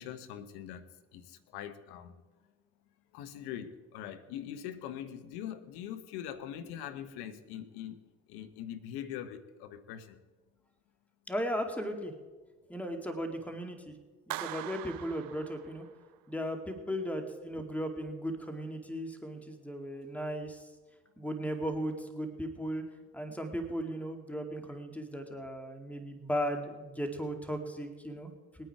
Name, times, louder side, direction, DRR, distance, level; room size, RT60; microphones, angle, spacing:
voice 1, 0.0-2.1 3.1-10.2 21.2-21.3, left 10 dB, 75° left, 10 dB, 1.1 m, -43 dB
voice 2, 11.3-12.1 12.7-13.9 14.4-15.8 16.3-20.7 21.2-22.8 23.1-28.7, equal, 5° left, 4 dB, 2.3 m, -36 dB
Clapping, 14.3-16.2, right 13 dB, 65° right, 0.8 m, -42 dB
20.5 x 9.1 x 4.8 m, 1.3 s
hypercardioid pair, 50°, 38 cm